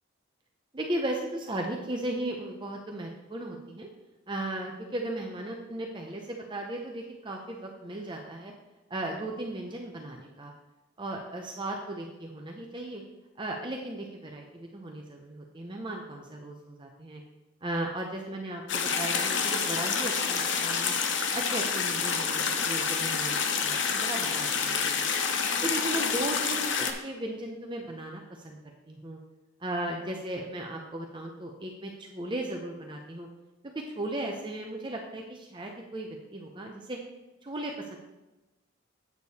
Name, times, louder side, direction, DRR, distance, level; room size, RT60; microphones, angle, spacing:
voice 1, 0.7-3.9 4.3-8.5 8.9-10.5 11.0-13.0 13.4-17.2 17.6-20.9 21.3-25.0 25.6-28.6 28.9-29.2 29.6-33.3 33.7-37.0 37.4-38.0, right 1 dB, 25° right, 1 dB, 0.7 m, -36 dB
sound 1, 18.7-26.9, left 6 dB, 60° left, 0.8 m, -28 dB
8.3 x 6.7 x 4.2 m, 1.0 s
head